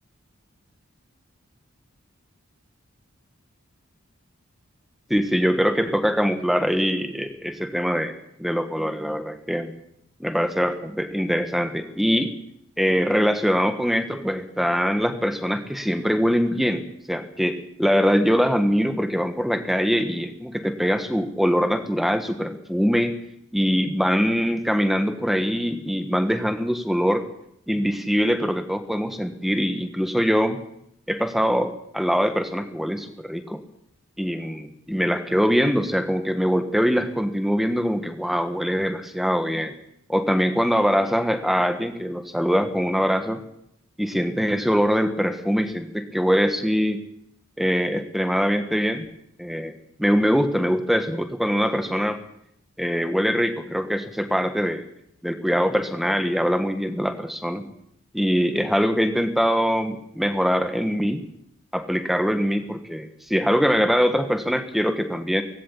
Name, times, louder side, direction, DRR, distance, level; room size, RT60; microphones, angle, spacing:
voice 1, 5.1-9.7 10.2-12.3 12.8-23.2 23.5-27.2 27.7-30.6 31.1-33.6 34.2-39.7 40.1-43.4 44.0-47.0 47.6-49.0 49.4-49.7 50.0-52.2 52.8-54.8 55.2-57.7 58.1-61.2 61.7-65.4, equal, ahead, 8 dB, 1.4 m, -23 dB
18.5 x 16.5 x 8.5 m, 0.73 s
head